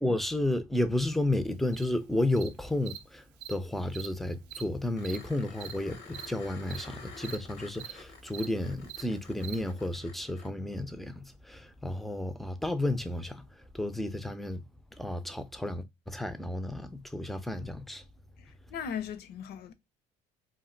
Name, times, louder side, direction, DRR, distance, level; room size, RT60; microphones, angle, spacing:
voice 1, 0.0-14.7 15.0-18.0, left 1 dB, ahead, 0.4 m, -32 dB
Cricket, 1.7-1.8 2.4-2.5 2.9-3.0 3.4-3.5 3.9-4.1 4.5-4.6 5.0-5.2 5.6-5.7 6.1-6.3 6.7-6.8 7.2-7.4 7.8-7.9 8.3-8.5 8.9-9.0 9.4-9.5, right 12 dB, 90° right, 0.5 m, -42 dB
sound 1, 5.0-10.5 13.2-13.3, left 4 dB, 90° left, 0.8 m, -50 dB
voice 2, 18.4-19.7, left 7 dB, 65° left, 0.6 m, -38 dB
2.5 x 2.0 x 3.8 m
cardioid pair, 100°, 18 cm